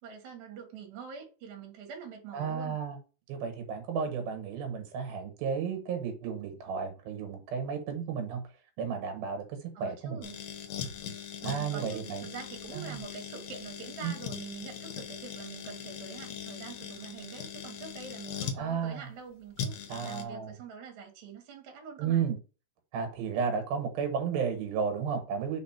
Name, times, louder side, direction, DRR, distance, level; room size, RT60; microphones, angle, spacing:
voice 1, 0.0-2.8 9.7-10.4 11.4-22.3, right 6 dB, 60° right, 2.6 m, -45 dB
voice 2, 2.3-3.0 3.3-8.4 8.8-10.2 11.4-12.3 12.7-13.0 14.0-14.1 18.6-19.0 19.9-20.5 22.0-22.4 22.9-25.6, right 6 dB, 85° right, 3.1 m, -33 dB
sound 1, 10.2-18.6 19.6-20.2, left 7 dB, 65° left, 1.9 m, -40 dB
5.1 x 4.3 x 4.3 m
omnidirectional pair, 4.1 m